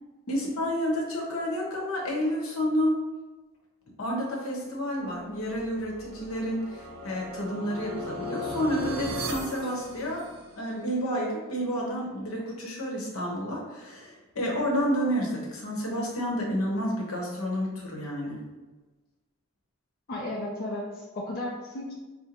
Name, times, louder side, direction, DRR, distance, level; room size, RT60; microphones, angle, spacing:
voice 1, 0.3-2.9 4.0-10.3 10.6-18.4, equal, 80° left, -2 dB, 0.9 m, -30 dB
sound 1, 5.5-10.7, equal, 75° right, 0.6 m, -37 dB
voice 2, 20.1-21.9, left 1 dB, 45° left, -4 dB, 0.5 m, -34 dB
5.0 x 2.1 x 2.9 m, 1.2 s
head